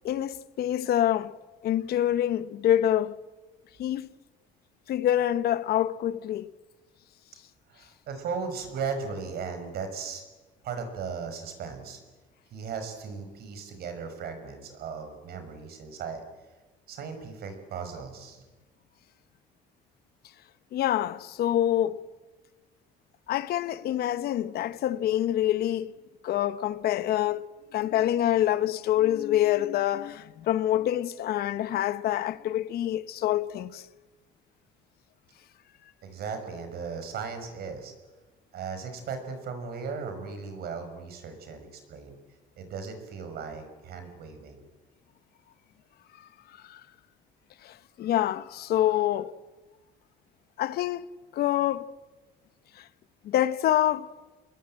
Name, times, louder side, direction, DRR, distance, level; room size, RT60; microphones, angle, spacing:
voice 1, 0.0-1.3 1.6-3.2 3.8-4.1 4.9-6.5 20.7-22.0 23.3-25.9 26.2-33.8 46.7-46.8 47.6-49.3 50.6-51.1 51.3-51.9 52.8-52.9 53.2-54.1, left 12 dB, 70° left, 1.1 m, -26 dB
voice 2, 7.7-10.2 10.6-12.0 12.5-16.2 16.9-18.4 36.0-37.9 38.5-42.1 42.6-44.6, right 5 dB, 70° right, 5.8 m, -37 dB
27.5 x 21.0 x 8.8 m
cardioid pair, 110°, 17 cm